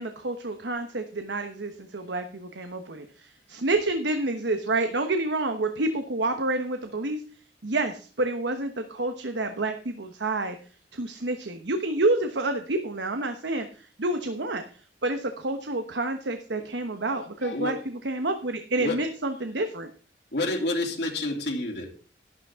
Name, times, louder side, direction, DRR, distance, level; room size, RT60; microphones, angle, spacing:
voice 1, 0.0-7.2 7.6-10.6 10.9-14.6 15.0-17.8 18.0-19.9, right 2 dB, 80° right, 7 dB, 1.1 m, -28 dB
voice 2, 17.4-17.8 18.8-19.0 20.3-21.9, left 2 dB, 65° left, 1 dB, 3.0 m, -29 dB
12.0 x 12.0 x 3.6 m, 0.40 s
head